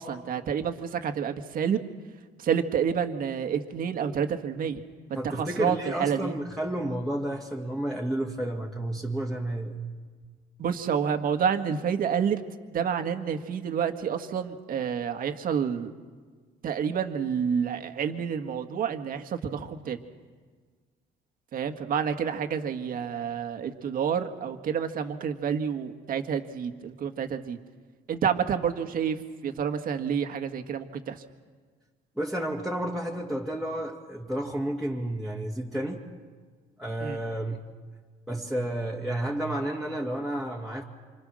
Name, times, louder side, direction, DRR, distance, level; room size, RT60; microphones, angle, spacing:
voice 1, 0.0-1.8 2.4-4.8 5.1-6.3 10.6-12.4 12.7-15.9 16.6-20.0 21.5-27.6 28.1-31.2 37.0-37.2, right 7 dB, 55° right, 7 dB, 1.8 m, -29 dB
voice 2, 5.1-9.8 32.2-36.0 36.8-37.6 38.3-40.8, right 1 dB, ahead, -3 dB, 2.3 m, -31 dB
27.0 x 26.0 x 6.4 m, 1.5 s
cardioid pair, 110°, 17 cm